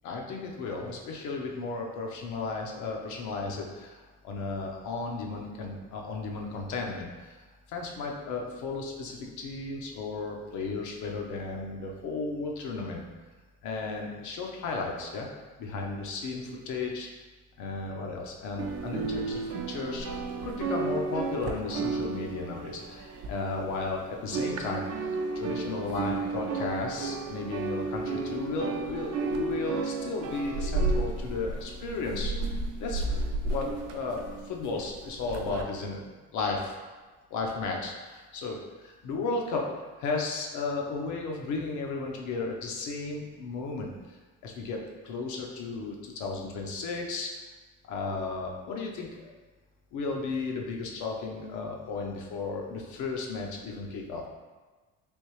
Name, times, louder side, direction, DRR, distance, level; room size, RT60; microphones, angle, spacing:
voice 1, 0.0-7.3 7.7-13.1 13.6-15.3 15.6-17.1 17.6-20.1 20.4-24.9 25.3-32.4 32.8-33.0 33.4-36.0 36.3-36.7 37.3-43.9 44.4-44.8 45.0-47.3 47.9-49.3 49.9-54.2, left 3 dB, 75° left, 0 dB, 0.7 m, -34 dB
sound 1, 18.6-23.9 24.2-35.6, right 3 dB, 55° right, 0.5 m, -33 dB
3.5 x 2.7 x 3.0 m, 1.3 s
cardioid pair, 85°, 30 cm